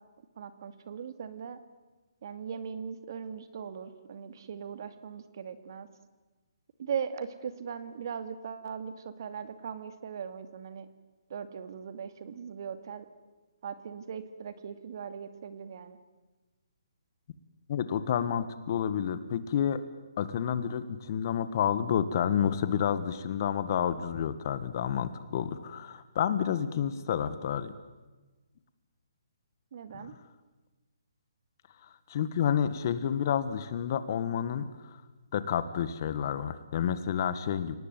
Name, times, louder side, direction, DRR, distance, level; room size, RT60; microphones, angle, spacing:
voice 1, 0.4-1.6 2.2-5.9 6.8-10.9 11.3-13.1 13.6-16.0 29.7-30.1, right 7 dB, 45° right, 11 dB, 2.3 m, -39 dB
voice 2, 17.7-19.8 20.2-27.7 29.9-30.1 32.1-34.7 35.3-37.8, left 8 dB, 35° left, 13 dB, 1.7 m, -29 dB
30.0 x 19.0 x 9.3 m, 1.2 s
hypercardioid pair, 165°, 3 cm